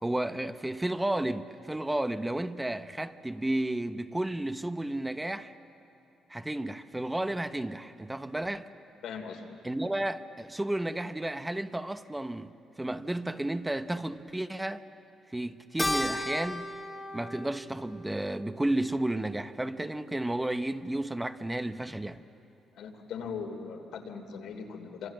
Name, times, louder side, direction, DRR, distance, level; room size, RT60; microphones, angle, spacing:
voice 1, 0.0-5.5 6.3-8.7 9.6-12.5 12.8-14.8 15.3-16.7 17.1-22.2, right 1 dB, 10° right, 0.8 m, -32 dB
voice 2, 9.0-9.4 22.8-25.1, left 6 dB, 80° left, 3.0 m, -39 dB
Keyboard (musical), 15.8-20.4, left 1 dB, 15° left, 1.9 m, -37 dB
28.5 x 26.0 x 7.6 m
cardioid pair, 90°, 0 cm